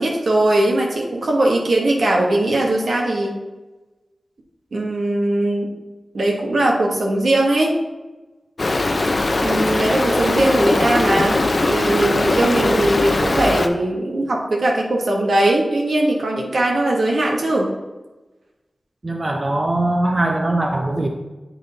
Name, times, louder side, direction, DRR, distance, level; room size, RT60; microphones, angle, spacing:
voice 1, 0.0-3.3 4.7-5.7 6.1-7.7 9.4-17.7, right 1 dB, 80° right, -1 dB, 1.2 m, -19 dB
Stream, 8.6-13.7, left 2 dB, 50° left, 0.5 m, -20 dB
voice 2, 19.0-21.1, right 2 dB, 40° right, 3 dB, 0.6 m, -21 dB
8.0 x 3.8 x 3.9 m, 1.1 s
cardioid pair, 50°, 0 cm